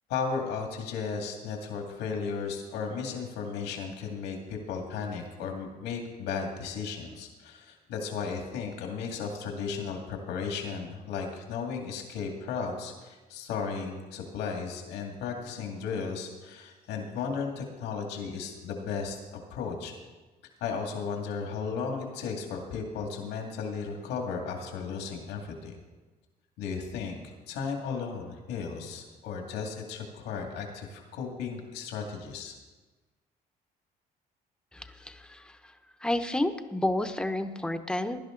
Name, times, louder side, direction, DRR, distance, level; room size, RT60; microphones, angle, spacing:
voice 1, 0.1-19.9 20.6-25.8 26.6-32.5, left 5 dB, 90° left, 2 dB, 2.3 m, -35 dB
voice 2, 34.7-35.6 36.0-38.2, left 1 dB, 5° left, 8 dB, 0.9 m, -30 dB
17.0 x 11.0 x 3.9 m, 1.3 s
cardioid pair, 110°, 17 cm